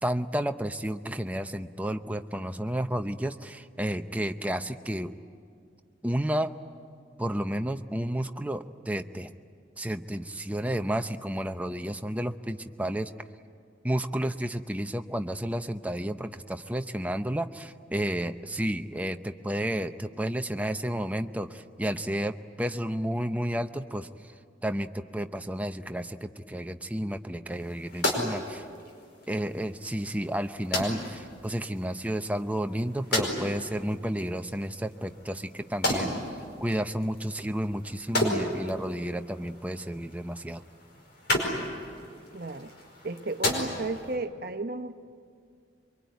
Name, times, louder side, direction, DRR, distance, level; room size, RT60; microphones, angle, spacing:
voice 1, 0.0-5.1 6.0-6.5 7.2-9.3 9.8-13.1 13.8-24.1 24.6-28.6 29.3-36.1 36.6-40.6, right 1 dB, 10° right, 7 dB, 0.7 m, -31 dB
sound 1, 27.5-44.2, left 1 dB, 60° left, 5.0 m, -34 dB
voice 2, 42.3-42.7 43.0-44.9, right 2 dB, 55° right, 8 dB, 1.0 m, -33 dB
24.0 x 24.0 x 9.4 m, 2.2 s
head